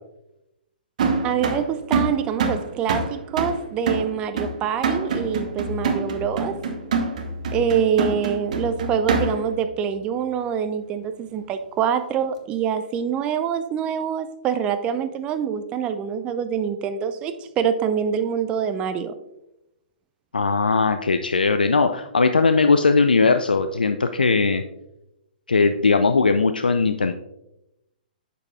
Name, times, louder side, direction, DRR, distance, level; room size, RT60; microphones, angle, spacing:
sound 1, 1.0-9.6, right 4 dB, 50° right, 1.1 m, -26 dB
voice 1, 1.2-6.6 7.5-19.1, right 8 dB, 20° right, 10 dB, 0.4 m, -25 dB
voice 2, 20.3-24.6 25.5-27.1, left 4 dB, 75° left, 9 dB, 0.4 m, -19 dB
9.4 x 6.8 x 2.4 m, 0.89 s
figure-of-eight pair, 115°, 5 cm